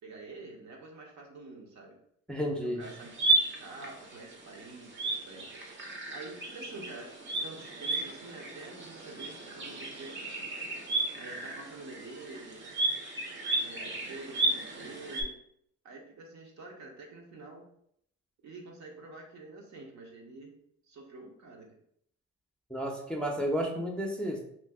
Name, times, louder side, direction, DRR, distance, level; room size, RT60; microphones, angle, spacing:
voice 1, 0.0-2.0 2.6-5.8 6.1-7.1 7.4-10.2 11.1-12.6 13.6-15.3 15.8-17.6 18.4-20.5 20.8-21.7, right 3 dB, 70° right, 0 dB, 0.9 m, -47 dB
voice 2, 2.3-2.8 22.7-24.4, equal, 5° left, -1 dB, 0.5 m, -32 dB
sound 1, 2.8-15.2, right 2 dB, 40° right, 0.7 m, -34 dB
2.7 x 2.5 x 3.5 m, 0.71 s
cardioid pair, 90°, 30 cm